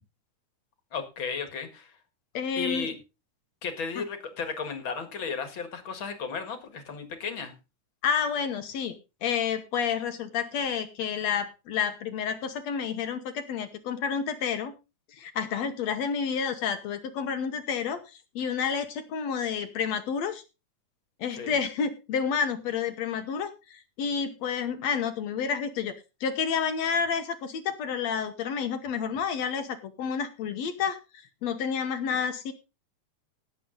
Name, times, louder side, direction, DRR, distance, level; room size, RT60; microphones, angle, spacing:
voice 1, 0.9-2.0 2.6-2.9 3.6-7.5 21.3-21.6, left 5 dB, 45° left, 8 dB, 2.2 m, -34 dB
voice 2, 2.3-2.9 8.0-9.0 9.2-14.7 15.2-18.0 18.4-20.4 21.2-25.9 26.2-31.0 31.4-32.5, left 6 dB, 65° left, 9 dB, 2.1 m, -30 dB
17.5 x 7.5 x 3.9 m, 0.29 s
omnidirectional pair, 3.6 m